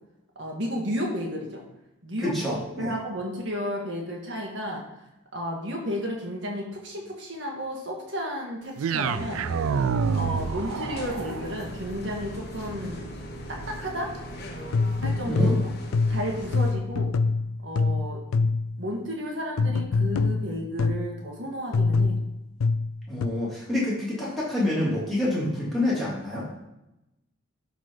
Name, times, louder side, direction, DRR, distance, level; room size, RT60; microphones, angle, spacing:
voice 1, 0.4-1.6 2.0-4.8 5.3-9.5 10.1-13.1 13.5-14.1 15.0-15.5 16.1-17.1 17.6-18.2 18.8-22.2, equal, 60° right, -1 dB, 1.8 m, -32 dB
voice 2, 2.2-2.9 15.3-15.6 23.1-26.5, left 1 dB, ahead, -8 dB, 2.8 m, -27 dB
sound 1, 8.8-17.0, right 6 dB, 85° right, 0.4 m, -32 dB
sound 2, 9.0-16.7, left 1 dB, 50° left, 1.3 m, -39 dB
sound 3, 14.7-18.8 19.6-21.2 21.7-23.3, left 3 dB, 85° left, 0.4 m, -24 dB
11.5 x 4.2 x 4.6 m, 0.91 s
head